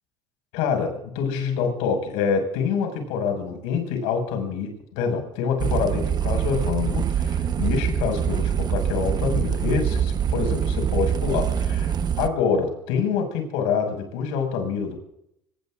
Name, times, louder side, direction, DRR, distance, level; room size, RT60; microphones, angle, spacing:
voice 1, 0.5-15.0, left 6 dB, 85° left, 4 dB, 6.1 m, -26 dB
sound 1, 5.6-12.3, right 8 dB, 45° right, 1.1 m, -24 dB
26.0 x 20.0 x 2.6 m, 0.79 s
supercardioid pair, 95°, 10 cm